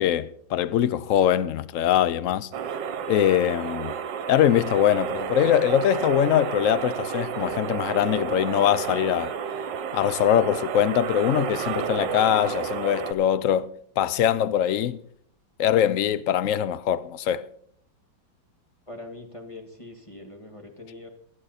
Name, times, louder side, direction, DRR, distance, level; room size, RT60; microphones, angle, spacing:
voice 1, 0.0-2.5 3.1-3.9 4.3-9.3 9.9-13.7 14.0-15.0 15.6-17.5, left 10 dB, 70° left, 0.8 m, -22 dB
sound 1, 2.5-13.1, right 7 dB, 70° right, 1.6 m, -31 dB
voice 2, 18.9-21.1, left 2 dB, 15° left, 1.7 m, -42 dB
23.5 x 8.1 x 4.1 m
omnidirectional pair, 2.1 m